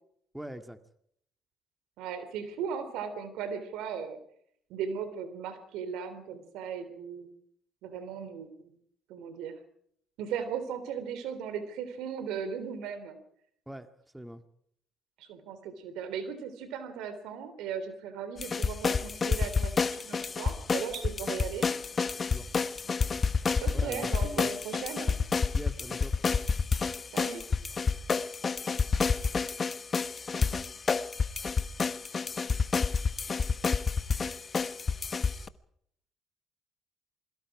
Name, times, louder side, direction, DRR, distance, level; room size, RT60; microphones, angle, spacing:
voice 1, 0.3-0.8 13.7-13.9 14.1-14.4 22.3-22.5 23.7-24.5 25.5-26.1, right 1 dB, 5° right, 8 dB, 2.0 m, -42 dB
voice 2, 2.0-4.2 4.7-7.3 7.8-8.7 9.1-9.6 10.2-13.2 15.2-21.7 23.6-25.1 27.1-27.4, right 7 dB, 80° right, 11 dB, 3.4 m, -37 dB
sound 1, 18.4-35.5, left 5 dB, 40° left, 1.1 m, -29 dB
28.0 x 22.5 x 4.9 m, 0.68 s
supercardioid pair, 65°, 0 cm